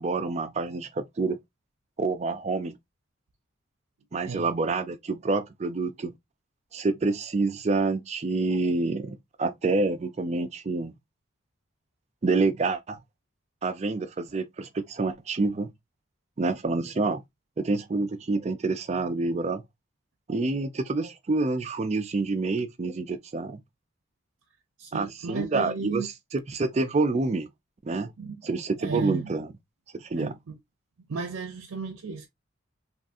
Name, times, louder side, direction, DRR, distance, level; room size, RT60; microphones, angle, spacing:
voice 1, 0.0-1.4 2.0-2.7 4.1-6.1 6.7-10.9 12.2-13.0 13.6-15.7 16.4-17.2 17.6-19.6 20.3-23.6 24.9-27.5 27.8-28.1 28.4-29.5 29.9-30.3, right 3 dB, 30° right, 0.4 m, -27 dB
voice 2, 24.8-26.1 28.2-28.4 28.8-29.5 30.2-30.6 31.1-32.3, right 4 dB, 80° right, 0.6 m, -34 dB
3.6 x 2.4 x 2.6 m
head